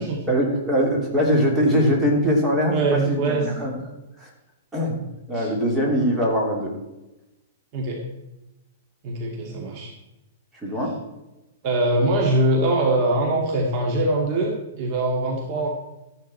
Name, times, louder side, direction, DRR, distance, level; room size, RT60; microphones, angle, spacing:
voice 1, 0.3-3.7 4.2-4.3 4.7-5.0 5.3-6.7 10.6-11.0, equal, 10° right, -1 dB, 2.9 m, -22 dB
voice 2, 2.7-3.5 5.3-5.5 7.7-8.0 9.0-9.9 11.6-15.7, right 2 dB, 40° right, 0 dB, 2.0 m, -23 dB
13.5 x 10.5 x 4.3 m, 0.98 s
hypercardioid pair, 150°, 0 cm